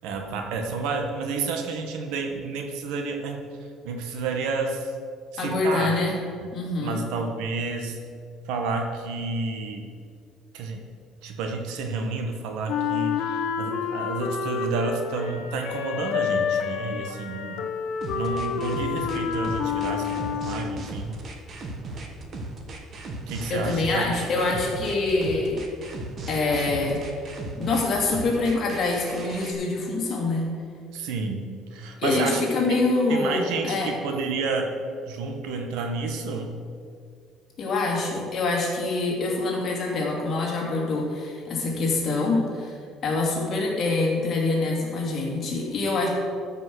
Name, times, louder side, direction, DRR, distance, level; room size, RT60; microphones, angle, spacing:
voice 1, 0.0-3.4 3.8-4.9 5.3-5.9 6.4-6.5 6.8-8.0 8.5-9.9 10.5-10.8 11.2-17.7 18.1-21.2 23.3-24.1 30.9-32.4 33.1-34.7 35.1-36.5, right 4 dB, 80° right, 3 dB, 1.5 m, -30 dB
voice 2, 5.4-6.1 6.5-7.0 23.5-25.6 26.3-27.0 27.6-30.4 32.0-33.9 37.6-42.7 43.0-46.1, left 3 dB, 35° left, -2 dB, 2.5 m, -25 dB
Wind instrument woodwind instrument, 12.7-20.9, left 6 dB, 65° left, 0.9 m, -29 dB
sound 1, 18.0-29.5, right 2 dB, 35° right, 1.2 m, -36 dB
13.0 x 5.6 x 6.3 m, 2.2 s
cardioid pair, 160°, 0 cm